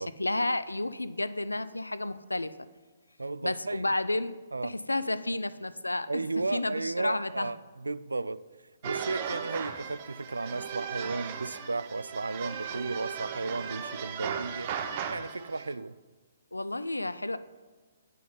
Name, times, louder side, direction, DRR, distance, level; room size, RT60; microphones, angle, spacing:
voice 1, 0.0-2.6 3.4-4.4 4.6-6.2 6.5-7.5 16.5-17.4, left 2 dB, 85° left, 0.4 m, -31 dB
voice 2, 3.2-3.9 4.5-4.8 6.1-8.4 8.8-14.7 15.1-16.0, right 3 dB, 80° right, 0.3 m, -34 dB
sound 1, 8.8-15.7, right 7 dB, 40° right, 0.7 m, -37 dB
9.3 x 5.7 x 5.4 m
figure-of-eight pair, 130°, 0 cm